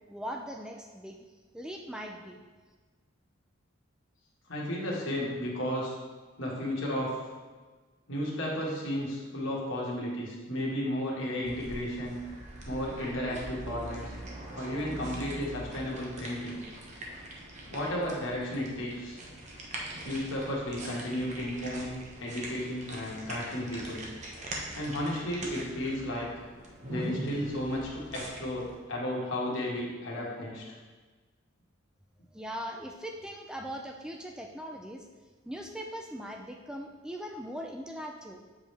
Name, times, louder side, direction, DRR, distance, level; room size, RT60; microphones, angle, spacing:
voice 1, 0.1-1.3 1.5-2.4 32.3-35.1 35.5-38.4, equal, 5° right, 2 dB, 0.3 m, -40 dB
voice 2, 4.5-5.9 6.4-7.1 8.1-12.2 12.7-14.1 14.6-16.6 17.7-19.2 20.0-24.0 24.7-26.3 26.9-30.6, left 1 dB, 60° left, -4 dB, 1.7 m, -33 dB
sound 1, 11.4-28.8, right 1 dB, 35° right, 1.0 m, -42 dB
7.4 x 5.1 x 3.4 m, 1.3 s
head